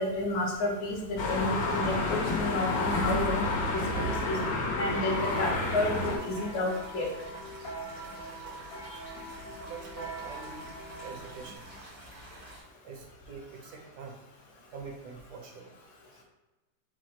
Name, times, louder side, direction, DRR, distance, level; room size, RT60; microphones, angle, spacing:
voice 1, 0.0-4.4 4.8-7.1, left 1 dB, 70° left, -1 dB, 1.3 m, -31 dB
sound 1, 1.2-6.2, left 2 dB, 85° left, 1.5 m, -30 dB
sound 2, 3.6-11.6, right 1 dB, 45° left, 0.8 m, -43 dB
sound 3, 5.1-12.6, equal, 90° right, 2.1 m, -48 dB
voice 2, 8.8-9.1 9.6-10.7 11.0-11.7 12.8-14.2 14.7-15.7 16.1-16.2, right 5 dB, 70° right, 1 dB, 1.1 m, -45 dB
4.6 x 2.1 x 4.2 m, 1.2 s
omnidirectional pair, 1.9 m